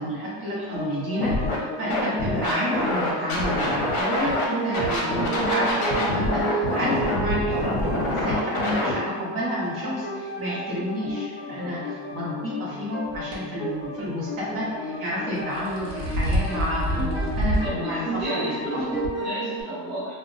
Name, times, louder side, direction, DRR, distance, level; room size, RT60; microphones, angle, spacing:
voice 1, 0.0-18.8, equal, 45° right, -6 dB, 0.8 m, -30 dB
sound 1, 0.7-19.6, right 2 dB, 30° left, 1.0 m, -32 dB
Scratching (performance technique), 1.2-1.6 1.9-4.4 4.7-8.9, left 1 dB, 50° left, 0.6 m, -26 dB
sound 2, 13.1-13.4 15.4-17.7 18.2-18.3 19.0-19.1, equal, 70° right, 0.9 m, -26 dB
voice 2, 17.6-20.2, equal, ahead, -12 dB, 0.7 m, -33 dB
2.1 x 2.0 x 3.7 m, 1.5 s
cardioid pair, 150°, 48 cm